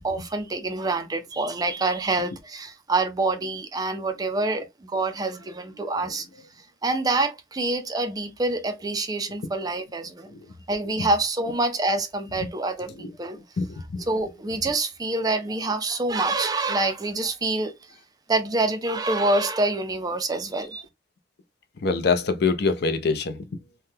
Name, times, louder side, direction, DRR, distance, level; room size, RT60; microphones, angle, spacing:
voice 1, 0.0-6.3 6.8-10.3 10.7-13.4 14.1-17.7 18.3-20.8, right 2 dB, 20° right, 0.4 m, -26 dB
voice 2, 13.6-14.0 21.8-23.5, left 4 dB, 55° left, 0.5 m, -25 dB
3.4 x 2.2 x 2.7 m
head